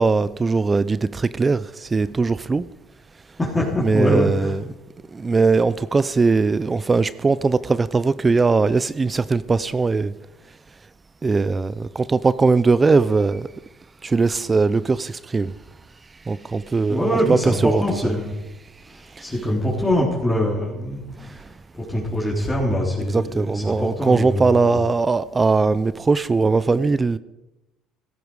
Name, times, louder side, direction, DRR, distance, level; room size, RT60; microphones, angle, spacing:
voice 1, 0.0-2.6 3.8-4.6 5.1-10.1 11.2-13.5 14.0-15.5 16.1-17.8 18.8-19.3 21.2-21.5 23.1-27.2, right 4 dB, 25° right, 16 dB, 0.5 m, -20 dB
voice 2, 3.4-4.5 16.9-18.3 18.9-21.3 21.7-24.8, left 1 dB, 15° left, -4 dB, 3.7 m, -23 dB
16.5 x 13.0 x 4.8 m, 0.98 s
supercardioid pair, 90°, 0 cm